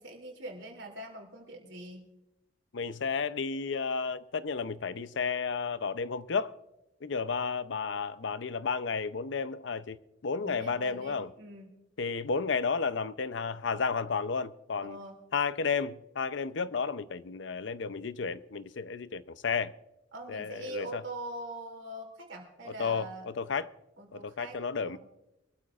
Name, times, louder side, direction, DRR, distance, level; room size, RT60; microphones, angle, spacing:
voice 1, 0.0-2.0 10.4-11.7 14.8-15.2 20.1-23.3 24.0-25.0, right 1 dB, 75° right, 2.9 m, -43 dB
voice 2, 2.7-6.5 7.0-10.0 10.2-11.3 12.0-15.0 15.3-19.7 20.3-21.0 22.8-23.7 24.1-25.0, left 5 dB, 70° left, 0.6 m, -32 dB
23.5 x 13.5 x 2.5 m
head